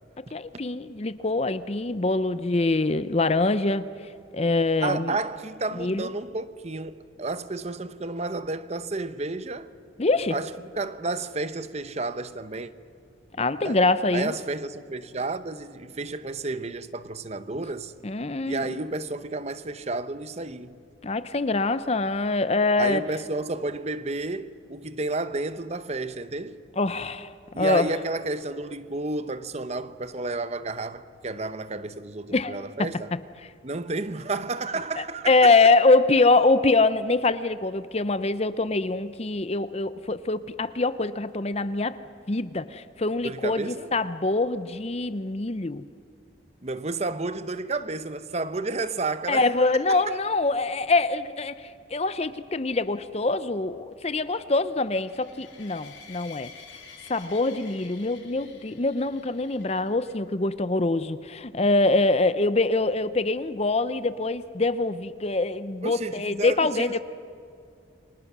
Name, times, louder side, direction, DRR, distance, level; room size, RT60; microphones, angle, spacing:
voice 1, 0.3-3.8 4.3-5.2 5.8-6.1 10.0-10.4 13.4-14.3 18.0-18.8 21.0-23.0 26.8-27.3 27.6-27.9 32.3-32.5 32.8-32.9 35.0-42.0 42.3-45.8 49.3-51.6 51.9-56.5 57.1-67.0, left 3 dB, 35° left, 0.7 m, -24 dB
voice 2, 4.8-9.7 10.3-12.7 13.6-13.8 14.1-17.9 18.4-20.8 22.8-26.6 27.5-33.1 33.6-35.5 43.2-43.9 46.6-50.2 65.8-67.0, right 3 dB, 35° right, 0.8 m, -31 dB
sound 1, 54.8-60.1, left 6 dB, 75° left, 3.7 m, -49 dB
30.0 x 25.0 x 6.1 m
head